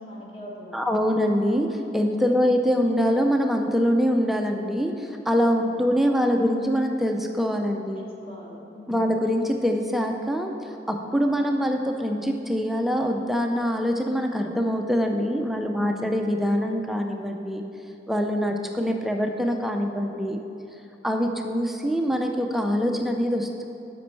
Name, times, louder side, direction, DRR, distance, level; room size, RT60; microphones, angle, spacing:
voice 1, 0.0-0.8 5.4-5.8 7.9-9.1 15.6-16.1, left 1 dB, 30° left, -4 dB, 1.5 m, -42 dB
voice 2, 0.7-8.1 8.9-17.6 18.1-20.4 21.0-23.6, equal, ahead, 3 dB, 0.4 m, -24 dB
12.5 x 5.2 x 4.5 m, 2.9 s
head